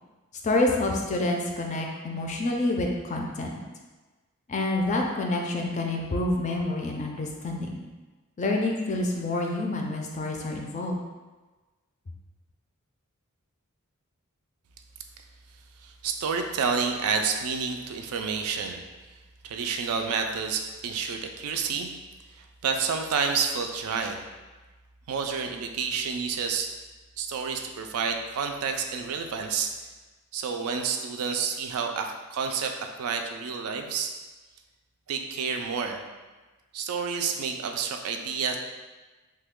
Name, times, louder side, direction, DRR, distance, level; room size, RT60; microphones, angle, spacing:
voice 1, 0.4-3.5 4.5-7.8 8.4-11.0, left 2 dB, 35° left, 1 dB, 0.4 m, -28 dB
voice 2, 15.8-18.8 19.4-21.9 22.3-24.2 25.1-26.7 27.2-29.7 30.3-32.7 33.0-34.1 35.1-36.0 36.7-38.6, right 5 dB, 80° right, 4 dB, 0.4 m, -29 dB
3.2 x 2.2 x 3.5 m, 1.2 s
head